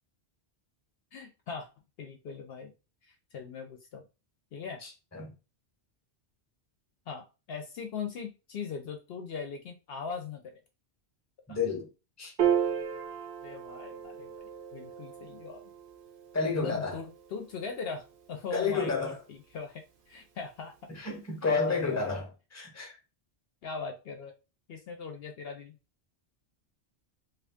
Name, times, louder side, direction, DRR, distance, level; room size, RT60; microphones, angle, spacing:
voice 1, 1.1-1.7 2.0-2.7 3.0-4.0 4.5-4.8 7.1-10.6 11.5-11.6 13.4-14.3 14.7-15.6 16.4-20.7 21.4-22.1 23.6-24.3 24.7-25.8, left 5 dB, 70° left, 0.8 m, -40 dB
voice 2, 4.8-5.3 11.5-11.9 12.2-12.3 16.3-17.0 18.5-19.2 20.9-23.0, left 4 dB, 15° left, 0.8 m, -31 dB
Piano, 12.4-19.0, right 8 dB, 60° right, 0.7 m, -35 dB
2.7 x 2.6 x 3.4 m
omnidirectional pair, 1.1 m